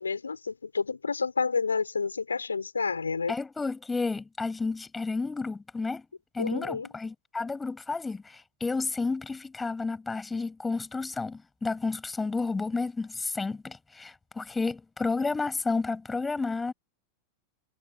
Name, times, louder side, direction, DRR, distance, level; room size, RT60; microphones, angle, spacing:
voice 1, 0.0-3.3 6.4-6.9, left 5 dB, 75° left, 5.7 m, -30 dB
voice 2, 3.3-6.1 6.3-16.7, left 3 dB, 10° left, 7.4 m, -31 dB
figure-of-eight pair, 90°, 0 cm